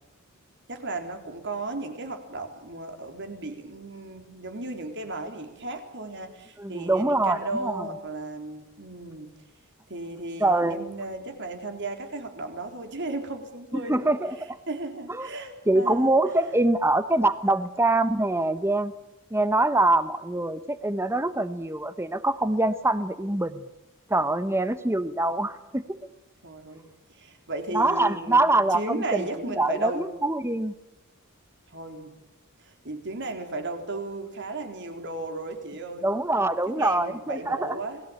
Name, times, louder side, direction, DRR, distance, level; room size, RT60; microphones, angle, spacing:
voice 1, 0.7-9.3 9.9-14.1 14.7-16.2 26.4-30.0 31.7-32.2 32.6-36.2 36.8-38.0, right 2 dB, 55° right, 5 dB, 3.8 m, -35 dB
voice 2, 6.6-7.9 10.4-10.9 13.7-14.6 15.1-15.3 15.7-18.9 19.3-23.6 24.1-26.0 27.7-30.7 36.0-37.8, right 2 dB, 10° right, 13 dB, 0.9 m, -24 dB
28.5 x 20.0 x 8.7 m, 0.91 s
head